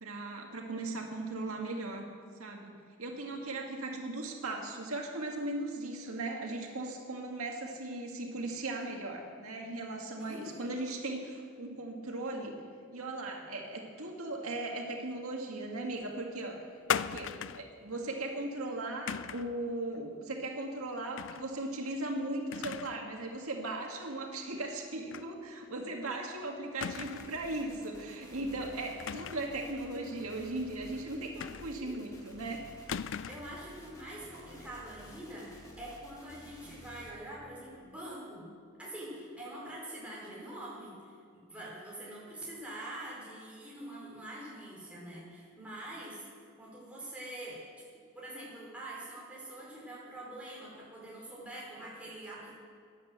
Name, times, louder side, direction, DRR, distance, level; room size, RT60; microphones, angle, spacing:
voice 1, 0.0-2.1 2.4-12.6 12.9-16.6 16.9-32.7, right 2 dB, 90° right, 1 dB, 1.9 m, -38 dB
voice 2, 10.2-10.7 31.7-32.0 33.3-38.4 38.8-46.2 46.6-47.8 48.1-52.5, right 1 dB, 5° right, -6 dB, 4.7 m, -45 dB
sound 1, 16.9-17.7 19.1-19.5 21.2-21.5 21.9-22.0 22.5-23.1 23.4-23.5 25.1-25.3 25.6-25.7 26.8-27.4 29.0-29.6 31.4-32.0 32.9-33.6, left 8 dB, 60° left, 0.4 m, -37 dB
sound 2, 26.8-37.1, equal, 15° left, 2.0 m, -53 dB
12.5 x 10.5 x 8.0 m, 2.2 s
head